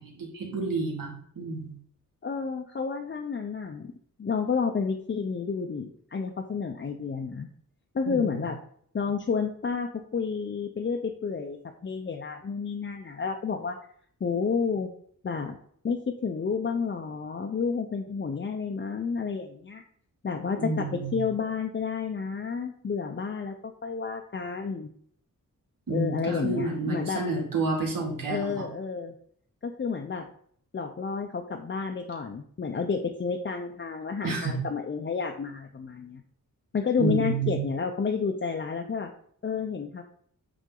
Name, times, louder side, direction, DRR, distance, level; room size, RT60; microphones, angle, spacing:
voice 1, 0.0-1.7 8.1-8.4 20.6-21.2 25.9-28.6 34.2-34.6 37.0-37.7, right 3 dB, 85° right, -2 dB, 2.2 m, -30 dB
voice 2, 2.2-3.9 4.2-7.5 7.9-8.6 8.9-11.6 11.8-13.8 14.2-14.9 15.2-15.6 15.8-19.8 20.2-24.9 25.9-27.2 28.3-29.1 29.6-30.3 30.7-36.2 36.7-39.1 39.4-40.0, left 5 dB, 35° left, 3 dB, 0.5 m, -30 dB
8.3 x 3.9 x 3.8 m, 0.62 s
wide cardioid pair, 165°, 33 cm